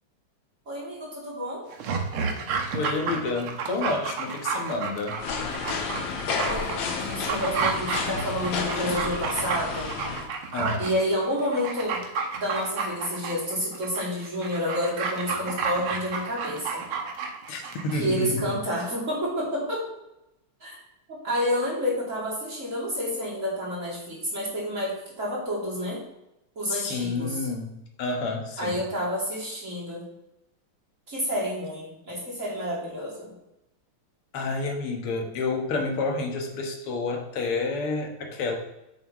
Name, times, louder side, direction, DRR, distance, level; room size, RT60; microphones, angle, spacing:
voice 1, 0.7-1.6 6.3-9.9 10.8-12.0 12.4-16.8 17.9-19.8 20.6-20.8 21.2-26.0 26.5-27.4 28.6-30.0 31.1-33.3, equal, 35° right, -6 dB, 3.2 m, -29 dB
Dog, 1.7-18.0 18.3-18.4, right 5 dB, 80° right, 1.9 m, -31 dB
voice 2, 2.7-5.2 10.5-10.8 17.5-18.5 26.7-28.8 34.3-38.6, left 3 dB, 85° left, 2 dB, 2.2 m, -29 dB
sound 1, 5.2-10.3, left 5 dB, 70° left, 1.7 m, -31 dB
8.9 x 7.2 x 3.1 m, 0.88 s
omnidirectional pair, 2.4 m